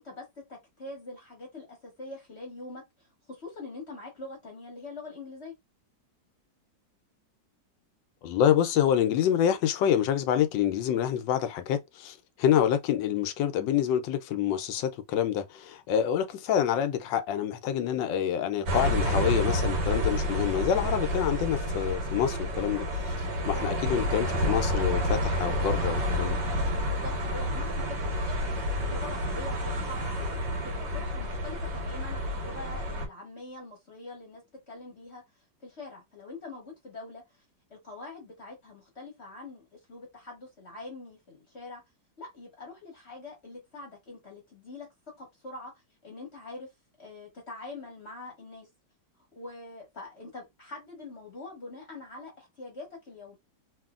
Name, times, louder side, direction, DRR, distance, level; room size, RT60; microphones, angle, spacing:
voice 1, 0.0-5.5 23.3-23.6 26.9-35.2 35.6-37.4 37.7-41.8 42.2-44.9 45.2-46.7 47.0-48.7 49.2-53.4, left 2 dB, 45° left, 1.1 m, -44 dB
voice 2, 8.2-26.4, left 9 dB, 90° left, 1.3 m, -27 dB
sound 1, 18.7-33.1, equal, 80° right, 1.6 m, -29 dB
3.0 x 2.7 x 2.4 m
omnidirectional pair, 1.9 m